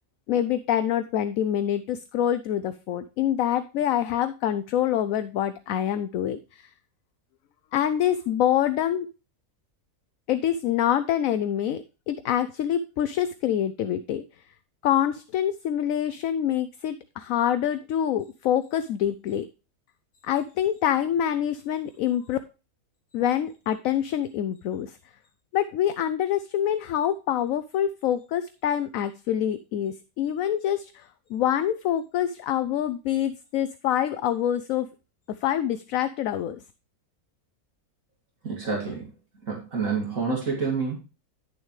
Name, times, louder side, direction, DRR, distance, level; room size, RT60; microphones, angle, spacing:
voice 1, 0.3-6.7 7.7-9.1 10.3-14.2 14.8-19.4 20.2-22.4 23.1-25.0 25.5-34.9 35.4-36.6, left 10 dB, 70° left, 12 dB, 0.9 m, -26 dB
voice 2, 38.4-39.1 39.5-41.0, right 5 dB, 60° right, -2 dB, 2.8 m, -28 dB
10.5 x 7.2 x 3.1 m, 0.31 s
omnidirectional pair, 1.6 m